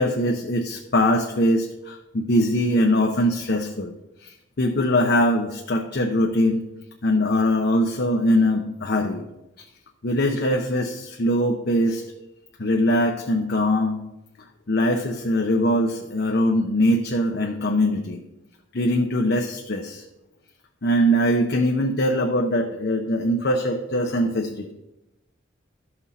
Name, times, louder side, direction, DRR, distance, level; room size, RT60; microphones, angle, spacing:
voice 1, 0.0-3.9 4.6-6.6 7.0-9.2 10.0-12.0 12.6-14.0 14.7-18.2 18.7-20.0 20.8-24.7, left 1 dB, 55° left, 2 dB, 0.7 m, -22 dB
12.5 x 6.0 x 4.2 m, 0.94 s
head